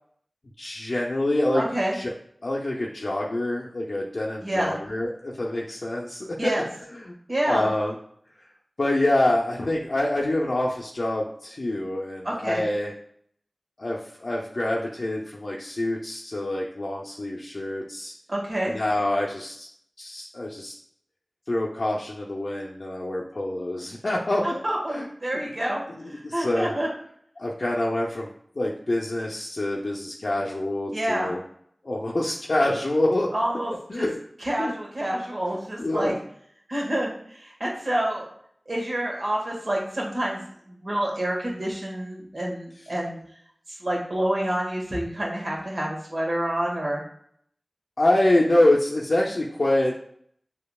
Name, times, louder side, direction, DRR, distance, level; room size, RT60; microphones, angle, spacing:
voice 1, 0.6-1.6 1.9-2.1 2.4-6.5 7.0-7.1 7.5-7.9 8.8-12.9 13.8-18.1 18.6-19.7 20.0-20.8 21.5-24.4 24.9-25.0 26.2-26.8 27.4-31.4 31.8-33.3 33.9-34.1 34.6-34.7 35.8-36.2 48.0-49.9, left 1 dB, 65° left, -3 dB, 0.5 m, -26 dB
voice 2, 1.5-1.9 4.4-4.8 6.4-6.6 7.3-7.7 12.2-12.6 18.3-18.7 24.4-26.9 30.9-31.3 33.3-34.1 34.4-36.1 36.7-38.3 38.7-43.2 43.7-47.0, right 1 dB, 60° right, -3 dB, 1.6 m, -28 dB
6.6 x 2.8 x 2.3 m, 0.66 s
wide cardioid pair, 50°, 0 cm